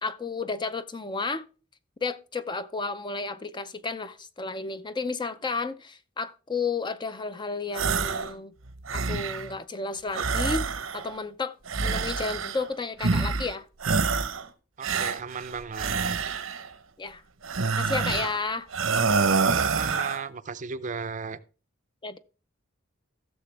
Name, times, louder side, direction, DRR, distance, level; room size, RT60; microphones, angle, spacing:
voice 1, 0.0-1.4 2.0-8.5 8.9-10.7 10.9-11.6 11.8-13.7 17.0-17.2 17.6-18.7 22.0-22.2, left 4 dB, 25° left, 0.5 m, -32 dB
sound 1, 7.7-8.3 8.7-9.5 10.1-11.2 11.7-12.7 13.0-13.5 13.8-14.5 14.8-16.7 17.4-18.4 18.7-20.2, right 4 dB, 85° right, 0.9 m, -27 dB
voice 2, 14.8-16.2 19.5-21.4, right 5 dB, 40° right, 0.5 m, -35 dB
15.5 x 6.7 x 3.3 m
head